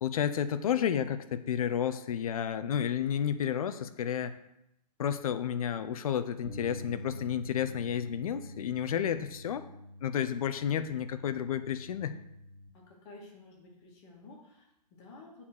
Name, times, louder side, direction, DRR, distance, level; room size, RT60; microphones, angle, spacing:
voice 1, 0.0-4.3 5.0-9.7 10.0-12.1, left 9 dB, 60° left, 11 dB, 0.7 m, -31 dB
Bass guitar, 6.4-12.7, left 1 dB, 10° right, 2.9 m, -46 dB
voice 2, 12.7-15.5, left 2 dB, 40° left, -1 dB, 2.4 m, -52 dB
8.2 x 4.3 x 6.6 m, 0.83 s
hypercardioid pair, 125°, 21 cm